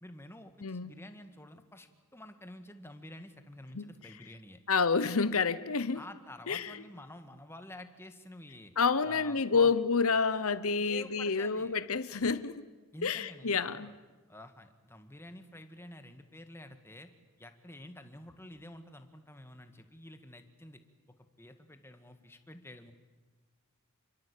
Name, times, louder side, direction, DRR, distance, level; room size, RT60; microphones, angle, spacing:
voice 1, 0.0-4.6 6.0-8.7 9.0-9.7 10.8-11.7 12.9-13.9 14.3-17.1 17.4-20.8 21.4-22.9, left 1 dB, 10° left, 7 dB, 1.8 m, -49 dB
voice 2, 0.6-0.9 3.7-3.9 4.7-6.0 6.5-6.8 8.8-12.6 13.0-13.9, left 5 dB, 75° left, 14 dB, 1.0 m, -29 dB
28.5 x 23.5 x 8.5 m, 1.3 s
head